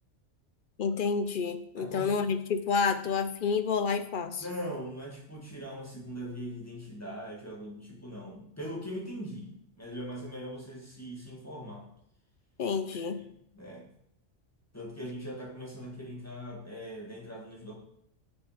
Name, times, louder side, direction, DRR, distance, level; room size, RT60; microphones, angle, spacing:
voice 1, 0.8-4.4 12.6-13.2, left 5 dB, 55° left, 9 dB, 0.6 m, -29 dB
voice 2, 1.8-2.3 4.4-11.9 12.9-13.3 13.5-13.8 14.7-17.8, equal, 10° left, -2 dB, 2.0 m, -41 dB
8.2 x 6.3 x 5.1 m, 0.74 s
omnidirectional pair, 1.3 m